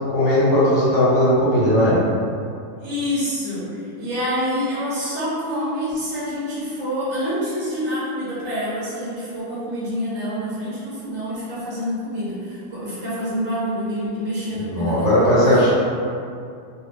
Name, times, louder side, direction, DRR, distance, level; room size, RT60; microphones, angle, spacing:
voice 1, 0.1-2.0 14.6-15.7, equal, 50° left, -9 dB, 1.2 m, -17 dB
voice 2, 2.8-15.1 15.4-15.7, equal, 10° right, -11 dB, 0.6 m, -27 dB
2.8 x 2.5 x 3.4 m, 2.4 s
omnidirectional pair, 1.8 m